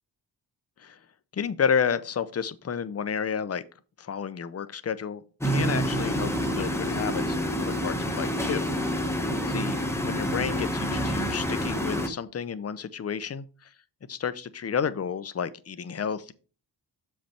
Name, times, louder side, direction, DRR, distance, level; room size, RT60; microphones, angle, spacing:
voice 1, 1.3-3.6 4.0-9.0 9.5-9.8 10.0-13.7 14.1-16.3, left 7 dB, 35° left, 0.6 m, -31 dB
sound 1, 5.4-12.1, equal, 5° left, 1.1 m, -28 dB
7.0 x 5.3 x 4.4 m
wide cardioid pair, 105°, 43 cm